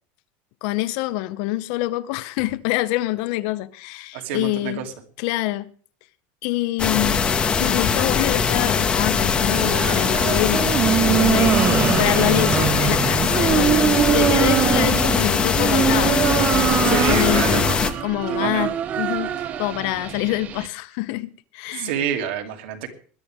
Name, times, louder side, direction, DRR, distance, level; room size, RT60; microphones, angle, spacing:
voice 1, 0.6-4.8 5.2-5.7 6.4-10.7 11.0-16.2 16.8-17.6 18.0-21.9, left 17 dB, 55° left, 0.7 m, -26 dB
voice 2, 4.1-4.9 15.1-15.2 16.8-17.6 18.3-18.7 21.7-22.9, right 8 dB, 75° right, 2.6 m, -27 dB
sound 1, 6.8-17.9, left 6 dB, 15° left, 0.8 m, -21 dB
sound 2, 9.4-20.7, right 10 dB, 25° right, 0.6 m, -23 dB
21.0 x 11.5 x 3.6 m
cardioid pair, 175°, 6 cm